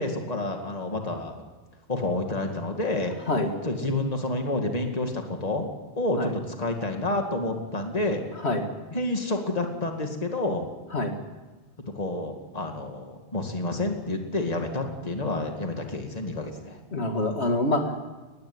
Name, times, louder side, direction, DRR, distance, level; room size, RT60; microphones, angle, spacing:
voice 1, 0.0-1.4 1.9-3.1 3.6-5.7 6.0-8.2 8.9-10.7 11.9-16.8, left 2 dB, 35° left, 4 dB, 2.3 m, -29 dB
voice 2, 16.9-18.0, left 2 dB, 75° left, 4 dB, 2.5 m, -25 dB
20.0 x 15.0 x 9.8 m, 1.3 s
omnidirectional pair, 1.1 m